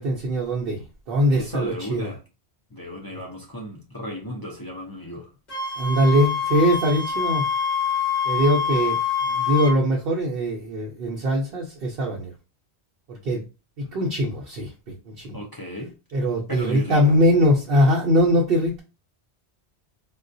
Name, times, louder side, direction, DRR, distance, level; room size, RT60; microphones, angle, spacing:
voice 1, 0.0-2.1 5.8-7.4 8.2-9.0 9.3-12.3 13.1-13.4 13.8-14.7 15.1-15.4 16.1-18.8, equal, 65° right, -2 dB, 0.8 m, -22 dB
voice 2, 1.3-2.2 2.7-5.3 15.3-15.9 16.5-17.2, equal, 25° left, -2 dB, 0.5 m, -34 dB
Wind instrument woodwind instrument, 5.5-9.8, left 6 dB, 40° left, 1.5 m, -25 dB
3.6 x 2.3 x 2.6 m, 0.31 s
omnidirectional pair, 1.1 m